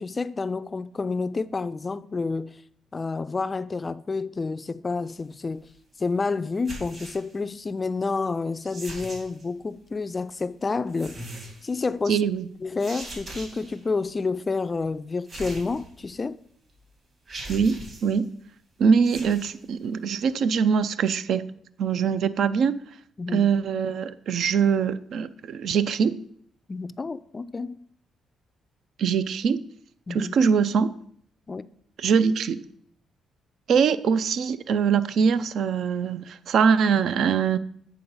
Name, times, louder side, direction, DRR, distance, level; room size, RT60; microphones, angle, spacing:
voice 1, 0.0-2.6 2.9-5.7 6.0-11.2 11.6-12.2 12.6-16.4 23.2-23.5 26.7-27.8 30.1-30.3 31.5-31.7, left 4 dB, 30° left, 0.3 m, -29 dB
sound 1, 6.6-7.4 8.6-9.4 10.9-11.7 12.8-13.8 15.3-16.2 16.7-16.8 17.3-18.2 19.0-19.5, right 2 dB, 45° right, 2.6 m, -40 dB
voice 2, 12.1-12.5 17.5-18.3 18.8-21.5 21.8-22.7 23.3-26.2 29.0-29.6 30.1-30.9 32.0-32.6 33.7-37.6, right 6 dB, 70° right, 0.4 m, -23 dB
8.4 x 3.9 x 5.4 m
cardioid pair, 90°, 0 cm